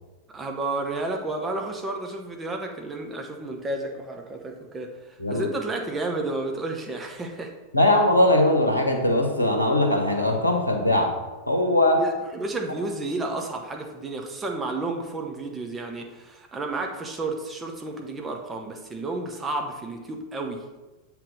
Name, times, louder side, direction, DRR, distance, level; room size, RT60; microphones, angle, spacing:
voice 1, 0.3-7.5 12.0-20.6, right 2 dB, 15° right, 3 dB, 0.8 m, -31 dB
voice 2, 7.7-11.1 11.5-12.0, left 1 dB, 85° left, 2 dB, 0.9 m, -20 dB
7.5 x 3.3 x 5.1 m, 1.2 s
figure-of-eight pair, 90°, 0 cm